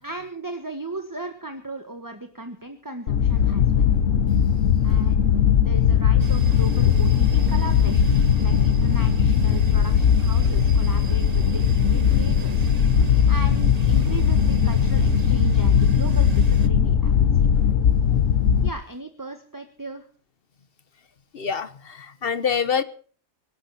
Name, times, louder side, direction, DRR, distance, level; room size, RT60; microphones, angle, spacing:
voice 1, 0.0-3.8 4.8-8.1 8.4-12.7 13.0-17.5 18.6-20.1, right 2 dB, 15° right, 6 dB, 1.5 m, -36 dB
sound 1, 3.1-18.7, left 8 dB, 65° left, 1.3 m, -19 dB
sound 2, 6.2-16.7, right 5 dB, 35° right, 0.7 m, -36 dB
voice 2, 21.3-22.8, left 6 dB, 45° left, 14 dB, 1.2 m, -25 dB
24.0 x 12.5 x 4.2 m, 0.43 s
omnidirectional pair, 1.5 m